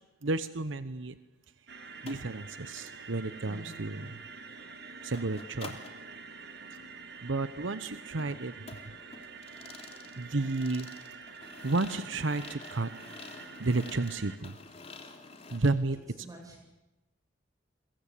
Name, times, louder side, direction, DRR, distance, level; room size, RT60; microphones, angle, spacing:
voice 1, 0.2-1.2 2.0-4.2 5.0-5.8 7.2-8.5 10.2-10.9 11.6-12.9 13.6-14.5 15.5-16.0, right 2 dB, 75° right, 13 dB, 1.0 m, -31 dB
sound 1, 1.7-14.4, right 4 dB, 55° right, 2.0 m, -47 dB
sound 2, 2.1-2.3 2.6-2.9 5.1-6.0 8.2-15.7, left 3 dB, 30° left, 3.1 m, -49 dB
voice 2, 3.4-4.1 10.3-10.5 16.1-16.6, right 2 dB, 20° right, 1 dB, 8.0 m, -49 dB
29.0 x 23.0 x 8.5 m, 1.0 s
head